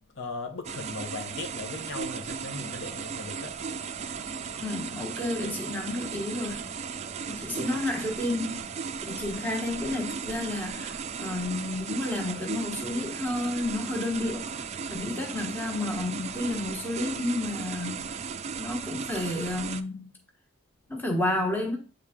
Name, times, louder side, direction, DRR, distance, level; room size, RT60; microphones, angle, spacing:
voice 1, 0.2-3.6, left 3 dB, 60° left, 0.9 m, -38 dB
sound 1, 0.6-19.8, right 6 dB, 30° right, 0.3 m, -36 dB
voice 2, 4.6-6.7 7.3-8.6 9.0-14.6 14.9-18.1 18.6-20.1 20.9-21.8, left 2 dB, 10° left, 1.2 m, -31 dB
8.3 x 3.6 x 3.6 m
head